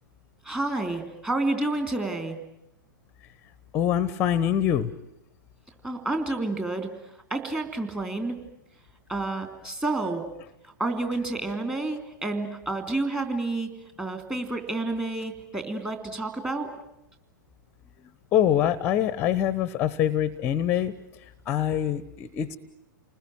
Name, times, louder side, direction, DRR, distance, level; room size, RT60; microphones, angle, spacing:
voice 1, 0.4-2.4 5.8-6.9 7.3-8.3 9.1-10.2 10.8-13.7 14.0-16.7, right 2 dB, 10° right, 6 dB, 3.1 m, -29 dB
voice 2, 3.7-4.9 18.3-20.9 21.5-22.6, left 10 dB, 25° left, 18 dB, 0.9 m, -24 dB
29.5 x 20.5 x 9.1 m, 0.86 s
figure-of-eight pair, 105°, 11 cm